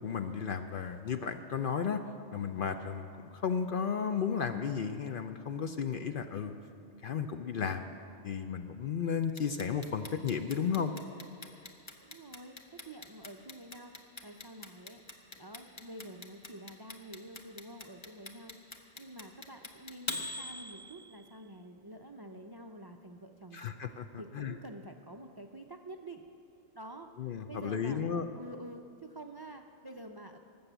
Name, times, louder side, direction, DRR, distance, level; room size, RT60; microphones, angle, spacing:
voice 1, 0.0-2.0 2.3-3.1 3.3-6.5 7.0-7.9 8.2-10.9 23.5-24.5 27.2-28.3, left 7 dB, 55° left, 8 dB, 0.6 m, -34 dB
Clock, 9.4-21.3, left 2 dB, 25° left, 0.9 m, -42 dB
voice 2, 12.0-12.6 12.9-14.0 14.2-15.0 15.4-23.6 24.2-26.2 26.7-28.0 28.3-30.4, right 1 dB, 40° right, 5 dB, 0.3 m, -48 dB
18.5 x 7.0 x 8.0 m, 2.6 s
omnidirectional pair, 1.3 m